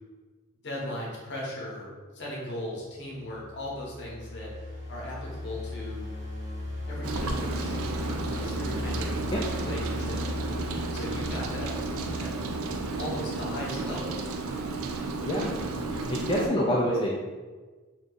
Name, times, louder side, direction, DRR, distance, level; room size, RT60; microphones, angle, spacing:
voice 1, 0.6-4.5 4.9-6.1 6.9-10.2 10.9-12.3 12.9-14.2, left 1 dB, 55° left, -4 dB, 0.8 m, -38 dB
sound 1, 3.1-13.2, left 2 dB, 45° right, 1.1 m, -37 dB
Rain, 7.0-16.5, right 3 dB, 70° right, 0.3 m, -33 dB
voice 2, 15.2-17.2, equal, 25° left, -4 dB, 0.3 m, -27 dB
2.6 x 2.3 x 3.7 m, 1.4 s
head